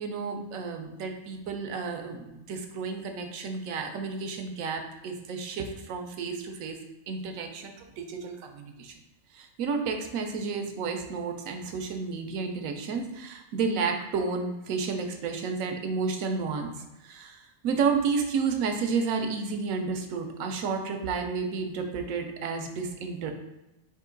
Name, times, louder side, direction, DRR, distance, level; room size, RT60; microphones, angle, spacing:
voice 1, 0.0-6.8 7.1-9.0 9.3-23.3, right 5 dB, 80° right, 5 dB, 1.0 m, -31 dB
3.7 x 2.7 x 3.7 m, 1.0 s
omnidirectional pair, 1.4 m